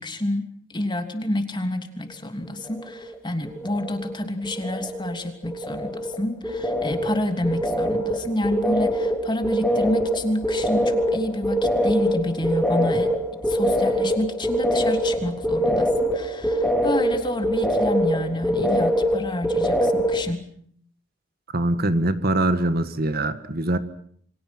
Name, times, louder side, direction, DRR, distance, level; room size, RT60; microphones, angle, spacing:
voice 1, 0.0-13.1 13.5-20.5, left 1 dB, 25° left, 6 dB, 3.0 m, -28 dB
sound 1, 2.6-3.2 3.4-4.2 4.4-20.2, equal, 5° left, 3.2 m, -24 dB
voice 2, 21.5-23.8, right 1 dB, 50° right, 11 dB, 1.7 m, -23 dB
29.0 x 24.5 x 6.2 m, 0.62 s
head